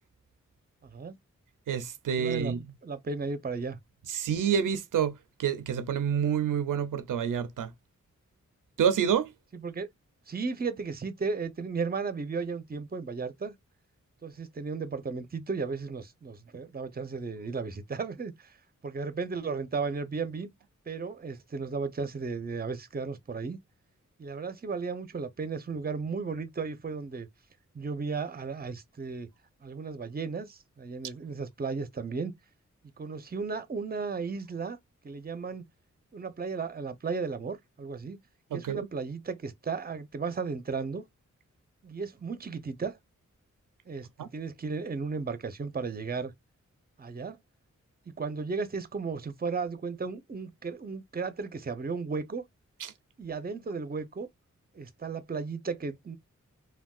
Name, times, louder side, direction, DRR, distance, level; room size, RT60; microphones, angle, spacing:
voice 1, 0.8-1.2 2.2-2.6 2.8-3.8 9.5-9.9 10.3-13.5 14.2-18.5 18.8-20.5 20.9-23.6 24.2-27.3 27.7-29.3 29.6-32.3 33.0-34.8 35.0-35.6 36.1-38.2 38.5-41.0 41.8-43.0 43.9-46.3 47.0-47.4 48.1-52.4 53.2-54.3 54.7-56.2, right 4 dB, 30° right, 0.6 m, -35 dB
voice 2, 1.7-2.6 4.1-7.7 8.8-9.3 38.5-38.9 44.2-44.3 52.8-52.9, right 8 dB, 90° right, 0.5 m, -28 dB
3.4 x 2.3 x 2.3 m
cardioid pair, 55°, 31 cm